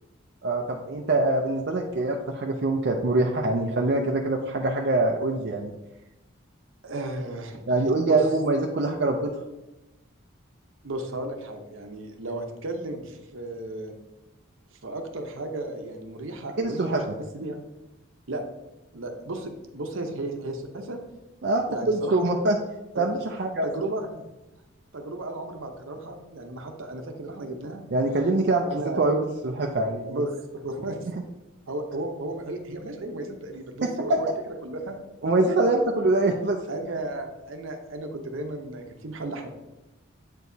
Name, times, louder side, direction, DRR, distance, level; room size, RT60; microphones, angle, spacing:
voice 1, 0.4-5.7 7.7-9.3 16.6-17.2 21.4-22.6 23.0-23.7 27.9-28.7 29.0-30.2 33.8-34.2 35.2-36.6, right 2 dB, 55° right, 1 dB, 0.4 m, -24 dB
voice 2, 6.8-8.2 10.8-13.9 14.8-17.6 18.3-18.4 18.9-21.0 21.7-22.2 22.9-23.1 23.6-24.2 24.9-27.8 28.7-29.0 30.1-31.1 31.7-35.0 35.5-35.6 36.7-39.5, right 2 dB, 75° right, 5 dB, 0.8 m, -34 dB
7.8 x 4.6 x 2.7 m, 1.0 s
head